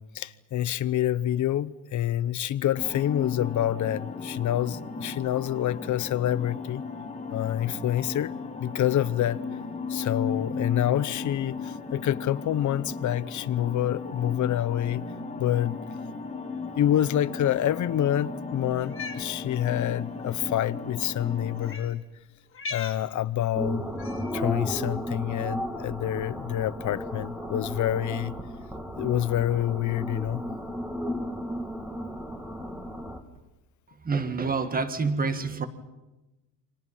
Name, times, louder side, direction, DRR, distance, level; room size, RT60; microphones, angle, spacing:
voice 1, 0.0-6.8 7.3-8.3 8.6-9.4 9.9-15.0 15.4-15.8 16.8-22.0 22.7-23.8 24.3-28.3 29.0-30.4, left 12 dB, 50° left, 0.9 m, -27 dB
sound 1, 2.8-21.8, left 4 dB, 15° left, 1.9 m, -36 dB
Cat, 18.8-19.3 20.3-20.5 21.6-21.9 22.5-23.0 24.0-24.3, left 4 dB, 35° left, 2.6 m, -38 dB
sound 2, 23.5-33.2, equal, 5° right, 2.0 m, -34 dB
voice 2, 34.0-35.7, right 4 dB, 25° right, 1.9 m, -27 dB
29.5 x 25.0 x 5.6 m
cardioid pair, 130°, 37 cm